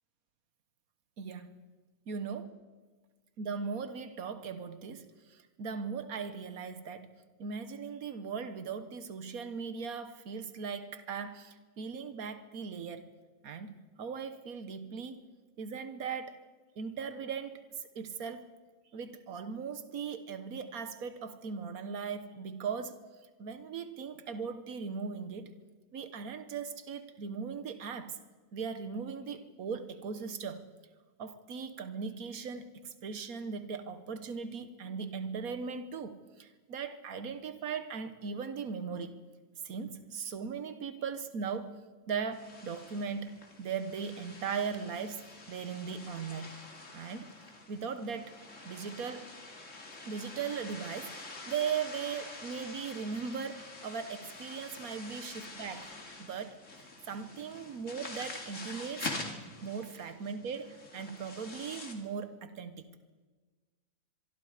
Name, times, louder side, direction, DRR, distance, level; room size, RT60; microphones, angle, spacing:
voice 1, 1.2-1.5 2.1-2.6 3.4-7.1 7.4-13.0 13.4-15.2 15.6-16.4 16.8-18.5 18.9-23.0 23.4-25.5 25.9-28.2 28.5-30.7 31.2-39.2 39.6-41.8 42.1-43.3 43.6-46.5 46.9-47.3 47.7-48.4 48.6-49.3 50.0-55.9 56.2-59.1 59.6-62.9, right 6 dB, 90° right, 10 dB, 1.6 m, -38 dB
sound 1, 42.3-61.9, left 3 dB, 60° left, 2.8 m, -46 dB
24.0 x 24.0 x 5.0 m, 1.3 s
omnidirectional pair, 1.5 m